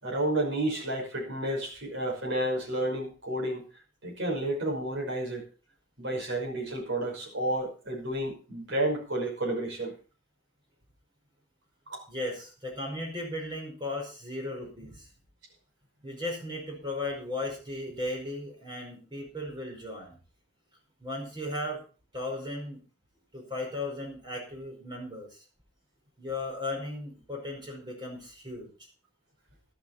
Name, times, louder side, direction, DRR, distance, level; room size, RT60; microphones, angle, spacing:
voice 1, 0.0-3.7 4.0-5.4 6.0-9.9 11.9-12.0, right 1 dB, 80° right, -2 dB, 5.8 m, -31 dB
voice 2, 12.1-15.1 16.0-20.2 21.0-21.8 22.1-22.8 23.3-25.4 26.2-28.7, left 2 dB, 25° right, 0 dB, 4.9 m, -36 dB
13.5 x 12.5 x 4.2 m, 0.36 s
head